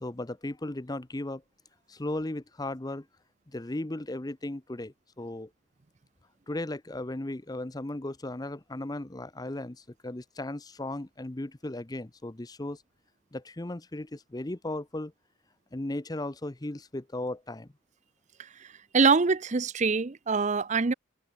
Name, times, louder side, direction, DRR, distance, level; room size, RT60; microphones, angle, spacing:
voice 1, 0.0-1.4 1.9-3.1 3.5-5.5 6.5-12.8 13.3-15.1 15.7-17.7, left 1 dB, 20° left, 0.7 m, -36 dB
voice 2, 18.4-20.9, right 4 dB, 35° right, 0.6 m, -25 dB
head